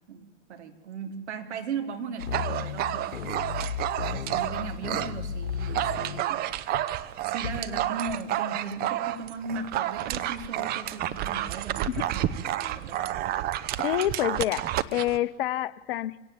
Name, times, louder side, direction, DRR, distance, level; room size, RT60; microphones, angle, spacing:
voice 1, 0.1-3.4 4.1-6.5 7.2-13.0, right 4 dB, 65° right, 6 dB, 3.2 m, -37 dB
sound 1, 2.2-6.3 6.7-6.9 7.4-7.9, left 7 dB, 70° left, 1.3 m, -35 dB
Dog, 2.2-5.1 5.5-15.2, right 13 dB, 25° right, 0.9 m, -30 dB
voice 2, 13.8-16.2, left 13 dB, 50° left, 16 dB, 0.9 m, -28 dB
26.0 x 17.5 x 7.4 m, 1.1 s
figure-of-eight pair, 110°, 37 cm